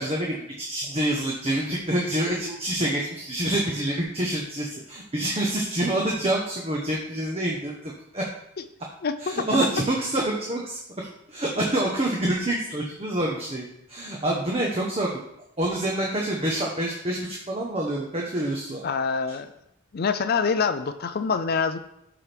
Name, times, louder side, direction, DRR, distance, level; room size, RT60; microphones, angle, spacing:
voice 1, 0.0-8.3 9.2-15.2 15.6-18.9, right 1 dB, 30° right, -1 dB, 1.0 m, -27 dB
voice 2, 9.0-9.7 18.8-19.5 19.9-21.8, left 5 dB, 50° left, 11 dB, 0.4 m, -26 dB
13.0 x 6.1 x 3.5 m, 0.80 s
head